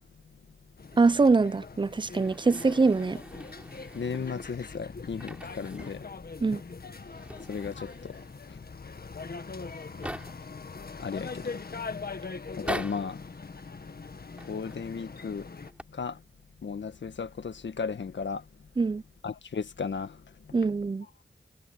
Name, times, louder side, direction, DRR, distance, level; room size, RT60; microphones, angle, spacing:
sound 1, 0.8-15.7, left 4 dB, 55° left, 1.6 m, -42 dB
voice 1, 1.0-3.2 6.4-6.6 18.8-19.0 20.5-21.1, right 4 dB, 25° right, 0.5 m, -23 dB
sound 2, 2.1-4.6 5.1-6.1 6.4-6.5 6.9-8.5 9.2-9.3 9.5-10.6 11.2-11.7 12.4-13.2 14.3-14.9 15.5-15.8, equal, 5° right, 4.1 m, -42 dB
voice 2, 3.9-6.1 7.5-8.2 8.5-8.6 11.0-11.5 12.6-13.3 14.5-15.5 15.9-16.2 16.6-18.4 19.2-20.2, left 5 dB, 80° left, 1.6 m, -35 dB
cardioid pair, 55°, 19 cm